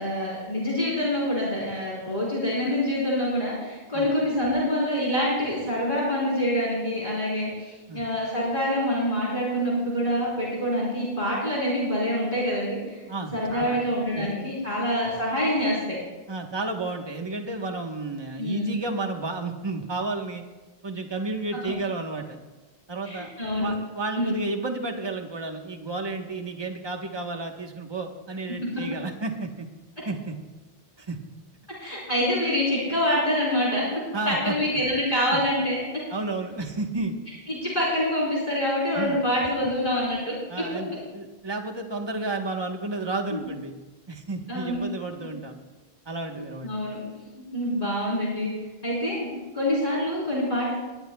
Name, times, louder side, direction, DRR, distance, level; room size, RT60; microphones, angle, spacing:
voice 1, 0.0-13.0 13.3-16.0 18.4-18.7 21.6-21.8 23.0-23.7 24.2-24.3 31.8-33.8 34.2-35.8 37.5-40.3 43.3-43.5 44.5-44.8 46.6-47.0 47.3-48.5 48.8-49.3 49.5-50.7, equal, 40° left, -7 dB, 4.2 m, -26 dB
voice 2, 13.1-13.8 14.2-14.3 14.7-14.8 16.3-20.4 20.8-22.4 22.9-23.3 23.6-29.7 30.0-30.3 31.0-31.2 34.1-34.5 35.3-35.4 36.1-37.2 38.9-39.2 40.5-43.7 44.1-45.6 46.1-46.7, right 3 dB, 25° right, 3 dB, 1.2 m, -32 dB
22.0 x 18.5 x 2.3 m, 1.2 s
omnidirectional pair, 1.0 m